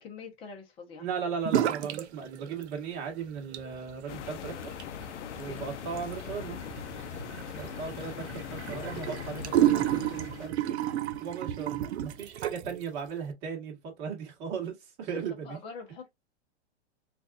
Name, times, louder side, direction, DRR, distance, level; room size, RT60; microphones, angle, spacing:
voice 1, 0.0-1.1 5.4-5.6 7.2-7.4 15.1-16.1, left 5 dB, 15° left, 0.8 m, -45 dB
voice 2, 1.0-4.7 5.4-6.6 7.5-10.8 11.2-15.6, right 6 dB, 30° right, 1.3 m, -37 dB
sound 1, 1.4-2.1 2.3-3.0 3.4-12.8, right 12 dB, 70° right, 0.6 m, -31 dB
sound 2, 4.1-10.5, left 9 dB, 85° left, 0.6 m, -41 dB
3.9 x 2.5 x 2.4 m
supercardioid pair, 160°, 34 cm